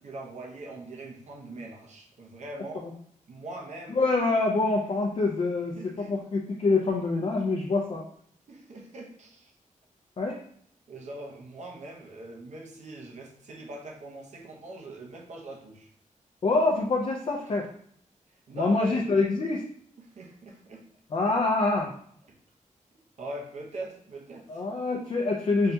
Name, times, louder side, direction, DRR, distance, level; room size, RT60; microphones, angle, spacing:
voice 1, 0.0-2.9 3.3-4.0 5.7-6.2 8.5-9.5 10.9-15.9 18.3-19.0 20.0-20.8 22.3-22.4 23.2-24.6, right 1 dB, 60° right, 0 dB, 0.7 m, -41 dB
voice 2, 4.0-8.0 10.2-10.4 16.4-17.7 18.5-19.6 21.1-21.9 24.5-25.7, left 3 dB, 45° left, 0 dB, 0.4 m, -25 dB
5.4 x 2.7 x 2.2 m, 0.64 s
wide cardioid pair, 170°, 13 cm